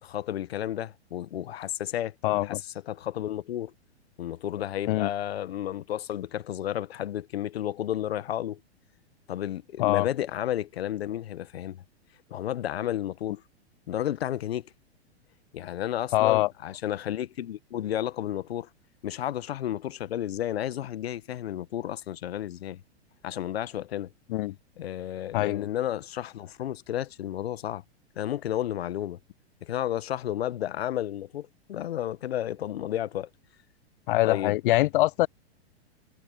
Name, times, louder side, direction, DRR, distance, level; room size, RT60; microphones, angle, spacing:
voice 1, 0.0-3.7 4.2-8.6 9.3-11.8 12.3-13.4 13.9-14.7 15.5-18.7 19.0-22.8 23.2-24.1 24.8-27.8 28.1-29.2 29.6-33.3 34.2-34.5, left 11 dB, 65° left, 1.5 m, -32 dB
voice 2, 2.2-2.6 4.9-5.1 9.8-10.1 16.1-16.5 24.3-24.5 25.3-25.7 34.1-35.3, left 17 dB, 50° left, 0.7 m, -23 dB
hypercardioid pair, 110°, 33 cm